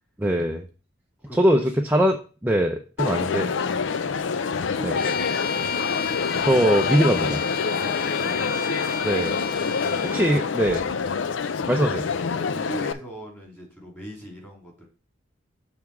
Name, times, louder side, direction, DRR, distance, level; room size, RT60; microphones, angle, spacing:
voice 1, 0.2-0.6 1.3-1.6 1.9-3.5 4.8-5.0 6.4-7.4 9.0-9.4 10.1-10.8 11.7-12.1, equal, 10° right, 2 dB, 0.5 m, -21 dB
voice 2, 1.3-1.7 3.7-4.4 4.7-5.9 7.7-8.6 9.6-10.4 10.8-10.9 12.3-14.9, equal, 10° left, -2 dB, 2.9 m, -40 dB
Crowd, 3.0-12.9, left 5 dB, 80° left, 0.5 m, -26 dB
Bowed string instrument, 4.9-10.3, left 6 dB, 55° left, 0.9 m, -31 dB
6.7 x 3.5 x 5.9 m, 0.36 s
head